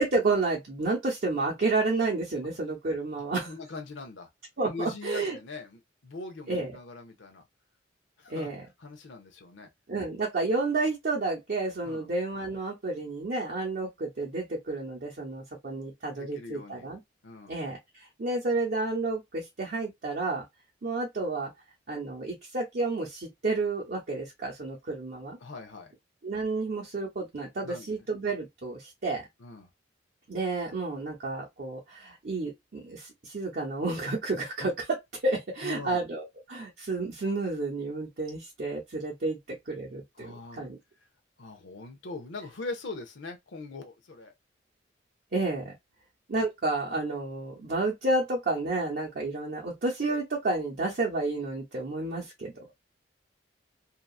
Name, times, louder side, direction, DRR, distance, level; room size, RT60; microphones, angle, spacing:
voice 1, 0.0-3.5 4.6-5.4 6.5-6.8 8.3-8.6 9.9-17.0 17.5-20.4 20.8-21.5 21.9-25.4 26.2-29.3 30.3-39.4 39.7-40.8 45.3-45.7 46.3-52.5, right 3 dB, 55° right, 0.8 m, -30 dB
voice 2, 3.2-4.3 4.6-7.4 8.2-8.5 8.8-9.7 11.8-12.1 16.1-16.9 17.2-17.6 25.4-25.9 27.6-27.9 29.4-29.7 35.6-36.0 40.2-40.7 41.4-44.3, left 3 dB, 85° left, 0.6 m, -41 dB
2.8 x 2.4 x 2.3 m
head